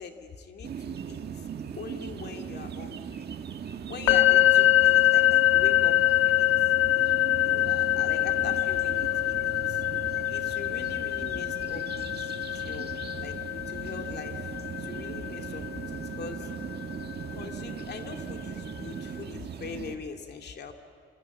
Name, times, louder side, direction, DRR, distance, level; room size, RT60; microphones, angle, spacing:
voice 1, 0.0-1.5 1.8-3.3 3.9-6.0 6.4-6.5 6.9-9.8 10.3-12.9 13.2-16.5 17.3-20.7, left 5 dB, 55° left, 4 dB, 2.5 m, -42 dB
sound 1, 0.6-20.0, right 7 dB, 55° right, 1.7 m, -39 dB
sound 2, 4.1-17.9, left 14 dB, 75° left, 1.5 m, -25 dB
28.5 x 26.0 x 7.3 m, 2.1 s
cardioid pair, 90°, 20 cm